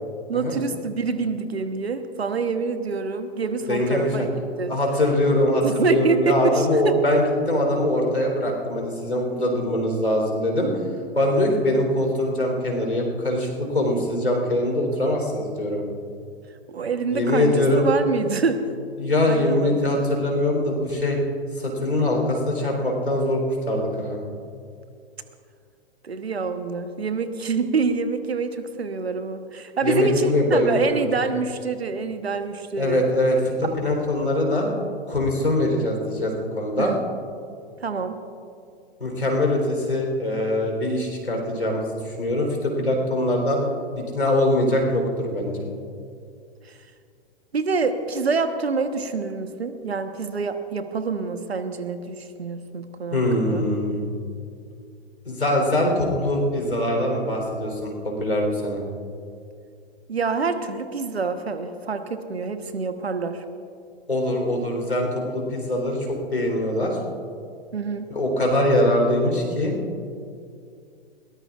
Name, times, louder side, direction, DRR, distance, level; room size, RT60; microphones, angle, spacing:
voice 1, 0.3-4.3 4.6-4.7 5.6-7.0 16.7-18.6 19.3-20.0 26.0-33.0 33.6-33.7 36.8-37.0 37.8-38.1 46.6-46.8 47.5-53.6 60.1-63.4 67.7-68.1, right 4 dB, 75° right, 9 dB, 1.2 m, -26 dB
voice 2, 3.7-4.3 4.6-10.7 11.1-15.8 17.1-17.8 19.0-21.2 21.6-24.2 29.8-31.0 32.8-34.7 35.1-36.9 39.0-43.6 44.1-45.6 53.1-54.1 55.3-58.8 64.1-67.0 68.1-69.7, left 1 dB, 80° left, 1 dB, 3.9 m, -23 dB
21.5 x 18.5 x 2.5 m, 2.4 s
figure-of-eight pair, 105°, 31 cm